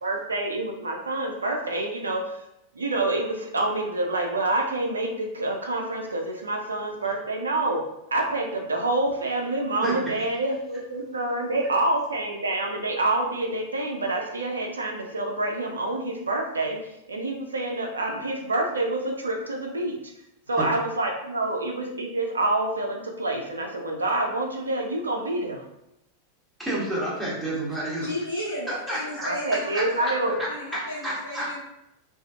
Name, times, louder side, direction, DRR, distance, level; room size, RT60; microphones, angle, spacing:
voice 1, 0.0-2.4 2.8-20.0 20.5-25.6 29.2-30.4, right 2 dB, 75° right, 1 dB, 0.3 m, -27 dB
voice 2, 26.6-28.1 28.9-29.3 29.7-30.1 30.4-31.6, right 1 dB, ahead, -7 dB, 0.9 m, -30 dB
voice 3, 28.0-30.1 30.5-31.6, left 1 dB, 85° left, -6 dB, 0.4 m, -34 dB
2.5 x 2.4 x 2.3 m, 0.83 s
figure-of-eight pair, 90°, 0 cm